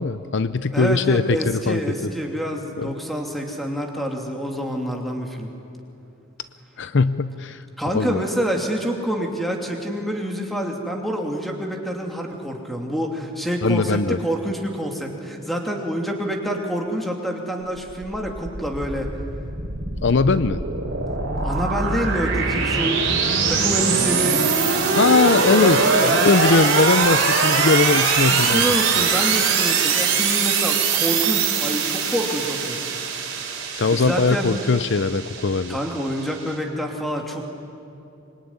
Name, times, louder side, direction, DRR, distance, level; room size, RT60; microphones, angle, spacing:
voice 1, 0.0-2.1 2.8-2.9 6.8-7.6 7.9-8.2 13.6-14.2 20.0-20.6 24.9-25.8 26.1-29.0 33.7-35.8, left 4 dB, 55° left, 13 dB, 0.6 m, -20 dB
voice 2, 0.7-5.5 7.8-19.1 21.4-24.4 25.2-26.2 28.3-32.8 33.9-34.5 35.7-37.4, equal, ahead, 1 dB, 2.8 m, -27 dB
sound 1, 17.8-36.5, right 5 dB, 55° right, 4.3 m, -22 dB
25.5 x 23.0 x 9.8 m, 2.7 s
head